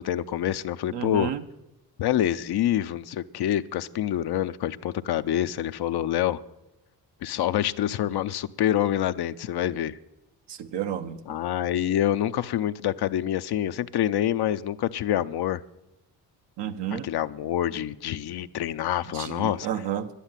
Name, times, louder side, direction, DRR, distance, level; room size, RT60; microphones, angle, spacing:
voice 1, 0.0-1.3 2.0-6.4 7.2-10.0 11.3-15.6 16.9-19.8, left 11 dB, 70° left, 12 dB, 0.6 m, -26 dB
voice 2, 0.9-1.4 10.5-11.2 16.6-17.1 19.1-20.1, right 10 dB, 80° right, 8 dB, 1.0 m, -31 dB
11.5 x 10.0 x 7.3 m, 0.94 s
cardioid pair, 70°, 41 cm